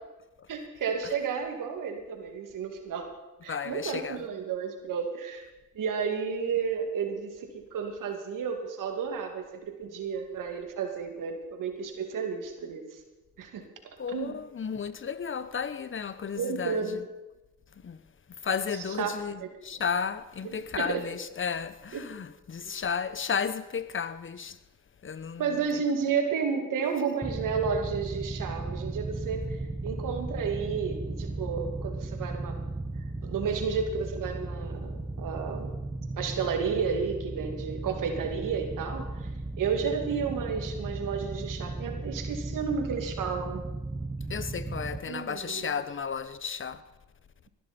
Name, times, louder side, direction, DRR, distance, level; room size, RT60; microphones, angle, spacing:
voice 1, 0.5-3.1 3.4-5.4 5.7-12.8 13.4-13.7 14.1-14.4 16.3-17.0 19.0-19.1 19.4-19.5 20.4-21.0 21.9-22.0 25.4-32.6 33.2-35.8 36.1-39.3 39.6-43.6 45.0-45.7, right 6 dB, 65° right, 2.5 m, -32 dB
voice 2, 3.5-4.2 14.0-17.0 17.8-18.0 18.4-24.6 25.0-25.8 44.3-46.8, left 6 dB, 35° left, 1.0 m, -33 dB
sound 1, 27.2-45.0, right 2 dB, 10° right, 1.2 m, -36 dB
21.0 x 12.0 x 4.4 m
supercardioid pair, 60°, 34 cm